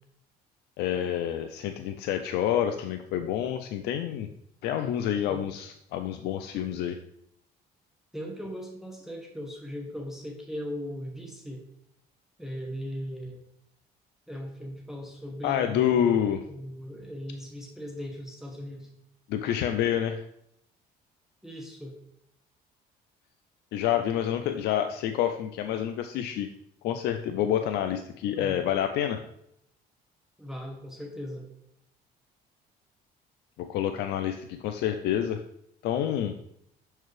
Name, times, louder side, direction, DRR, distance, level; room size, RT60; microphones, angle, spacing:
voice 1, 0.8-4.3 4.6-7.0 15.4-16.4 19.3-20.2 23.7-26.5 26.8-29.2 33.6-35.4 35.8-36.3, left 10 dB, 80° left, 7 dB, 0.4 m, -28 dB
voice 2, 8.1-11.6 12.4-13.4 14.3-18.9 21.4-21.9 28.3-28.6 30.4-31.5, equal, ahead, 0 dB, 1.0 m, -38 dB
6.6 x 4.6 x 3.2 m, 0.75 s
cardioid pair, 110°, 17 cm